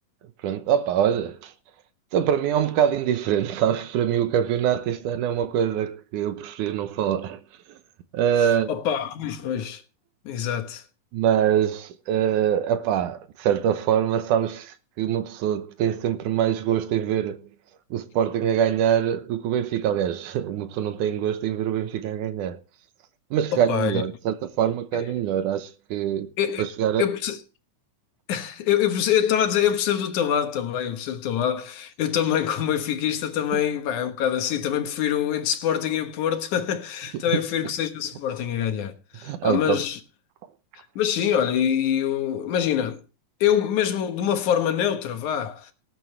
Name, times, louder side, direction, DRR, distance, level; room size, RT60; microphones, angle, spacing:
voice 1, 0.4-1.5 2.1-7.4 7.7-7.8 8.1-8.7 11.1-17.4 17.9-22.6 23.3-26.3 26.6-27.1 33.5-33.6 37.1-37.4 39.2-39.8, right 9 dB, 75° right, 2.4 m, -24 dB
voice 2, 8.7-9.8 10.3-10.8 23.5-24.0 24.9-25.0 26.4-26.6 27.0-27.4 28.3-40.0 41.0-43.0 43.4-45.7, left 9 dB, 70° left, 2.7 m, -25 dB
19.0 x 9.2 x 3.3 m
omnidirectional pair, 3.7 m